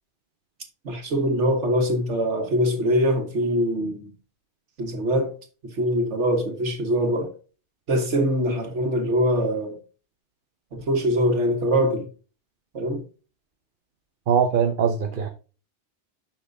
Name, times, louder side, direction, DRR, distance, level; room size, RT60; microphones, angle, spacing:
voice 1, 0.9-4.1 4.8-5.3 5.8-7.3 7.9-9.8 10.9-12.1 12.7-13.0, equal, 85° right, 1.9 m, -23 dB
voice 2, 14.3-15.3, right 7 dB, 50° right, 0.9 m, -21 dB
9.9 x 6.0 x 2.7 m
omnidirectional pair, 1.2 m